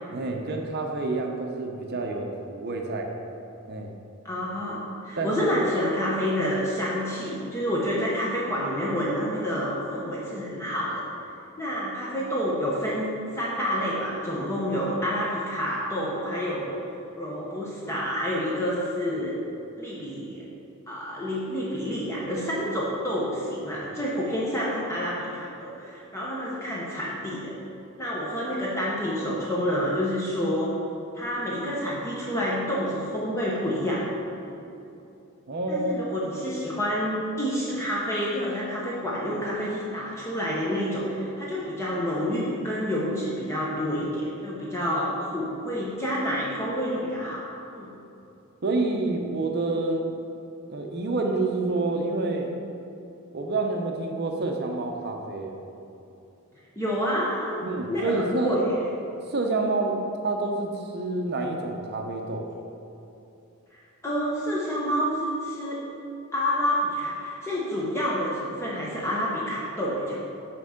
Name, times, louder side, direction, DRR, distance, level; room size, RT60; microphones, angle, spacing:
voice 1, 0.1-3.1 3.7-4.0 5.2-5.6 35.5-35.9 48.6-50.1 50.7-52.5 53.3-55.5 57.6-58.6 59.3-62.5, right 2 dB, 45° right, 2 dB, 0.6 m, -28 dB
voice 2, 4.2-11.0 11.6-16.8 17.2-19.4 19.8-20.4 20.9-27.5 28.0-30.7 31.1-34.0 34.4-34.6 35.7-47.5 47.7-47.9 56.8-57.6 57.9-58.8 64.0-65.8 66.3-70.2, equal, 10° left, -6 dB, 0.8 m, -28 dB
5.9 x 4.5 x 6.4 m, 2.8 s
head